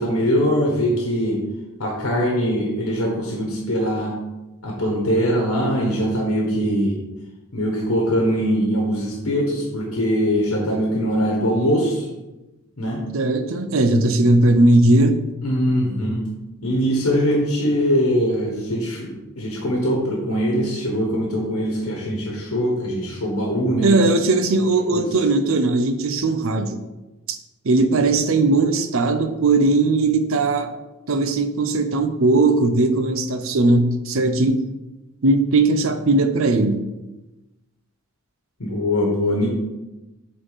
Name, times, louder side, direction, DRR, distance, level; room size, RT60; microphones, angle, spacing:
voice 1, 0.0-1.4 1.8-4.2 4.6-7.0 7.5-12.1 12.8-13.1 15.4-16.2 16.6-24.0 24.9-25.1 38.6-39.5, equal, 80° left, -1 dB, 1.3 m, -22 dB
voice 2, 13.1-15.2 23.8-26.8 27.3-27.4 27.6-30.7 31.1-34.6 35.2-36.8, right 2 dB, 65° right, 9 dB, 0.6 m, -18 dB
7.9 x 3.9 x 4.1 m, 1.0 s
head